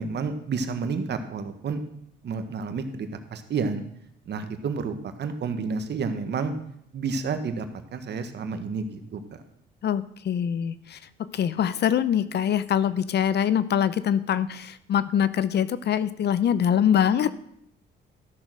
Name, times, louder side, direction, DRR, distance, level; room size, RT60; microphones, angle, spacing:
voice 1, 0.0-1.8 2.2-3.8 4.3-6.5 6.9-7.7 7.9-9.2, right 5 dB, 60° right, 8 dB, 1.4 m, -30 dB
voice 2, 9.8-17.3, left 9 dB, 60° left, 15 dB, 0.7 m, -24 dB
13.5 x 6.5 x 6.2 m, 0.73 s
cardioid pair, 90°, 20 cm